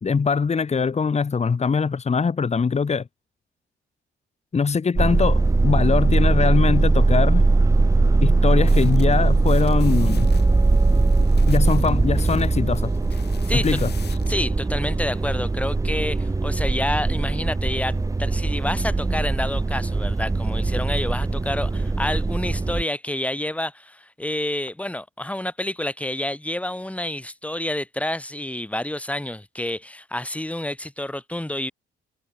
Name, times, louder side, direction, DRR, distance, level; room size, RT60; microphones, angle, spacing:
voice 1, 0.0-3.1 4.5-7.4 8.2-10.3 11.5-12.9 13.6-13.9, left 5 dB, 35° left, 2.2 m, -22 dB
sound 1, 4.9-22.8, right 3 dB, 15° right, 1.0 m, -20 dB
sound 2, 8.6-14.4, left 8 dB, 55° left, 5.6 m, -45 dB
voice 2, 13.5-13.8 14.3-31.7, left 1 dB, 5° left, 4.4 m, -29 dB
cardioid pair, 90°, 20 cm